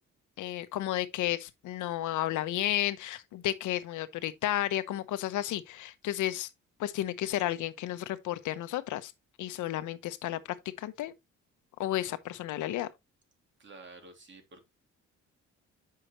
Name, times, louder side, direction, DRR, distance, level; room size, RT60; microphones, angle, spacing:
voice 1, 0.4-6.5 6.8-9.1 9.4-10.4 10.8-11.1 11.8-12.9, left 13 dB, 80° left, 0.8 m, -32 dB
voice 2, 13.6-14.7, right 3 dB, 40° right, 2.5 m, -50 dB
7.9 x 5.7 x 2.9 m
cardioid pair, 90°, 30 cm